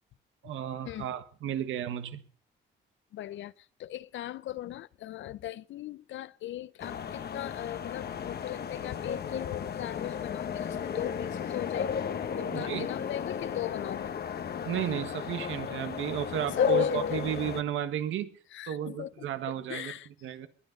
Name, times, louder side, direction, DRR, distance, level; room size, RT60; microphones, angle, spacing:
voice 1, 0.4-2.2 12.5-12.9 14.6-18.3 18.6-19.9 20.2-20.5, right 10 dB, 80° right, 1.5 m, -33 dB
voice 2, 3.1-12.1 12.3-14.1 16.5-17.3 18.5-20.1, left 13 dB, 70° left, 0.7 m, -40 dB
sound 1, 6.8-17.6, left 7 dB, 55° left, 1.3 m, -33 dB
21.0 x 10.5 x 5.3 m
cardioid pair, 90°, 20 cm